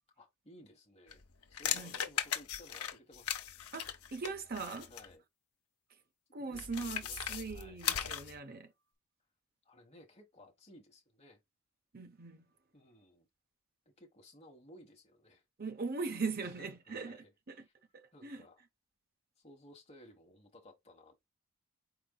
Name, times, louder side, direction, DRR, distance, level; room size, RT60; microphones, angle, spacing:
voice 1, 0.2-1.2 1.5-3.4 4.9-5.2 6.4-7.8 9.6-11.4 12.7-13.3 13.8-15.4 16.4-17.3 17.6-17.7 18.1-18.6 19.4-21.3, left 1 dB, 30° left, 1.4 m, -58 dB
sound 1, 1.1-5.1 6.5-8.4, left 10 dB, 75° left, 0.7 m, -38 dB
voice 2, 3.7-4.9 6.3-8.7 11.9-12.4 15.6-17.6 17.9-18.4, right 4 dB, 40° right, 0.8 m, -40 dB
4.9 x 4.4 x 2.3 m
head